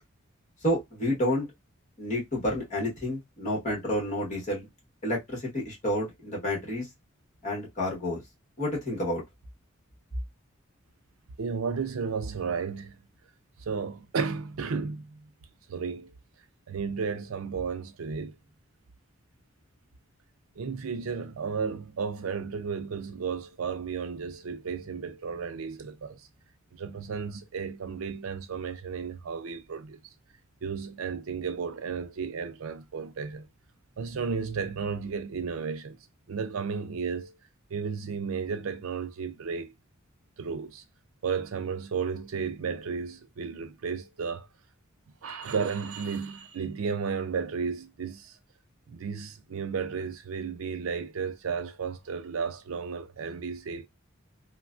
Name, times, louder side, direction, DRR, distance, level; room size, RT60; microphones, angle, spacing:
voice 1, 0.6-1.5 2.0-4.7 5.0-6.9 7.4-8.2 8.6-9.2, left 1 dB, 35° left, 1.5 m, -29 dB
voice 2, 11.4-13.0 13.7-15.2 15.7-16.1 16.7-18.4 20.6-26.2 26.7-30.0 30.6-33.5 34.0-36.0 36.3-37.3 37.7-39.7 40.4-40.8 41.2-44.5 45.2-48.4 48.9-53.9, right 5 dB, 75° right, 0.5 m, -33 dB
3.0 x 2.2 x 2.4 m
head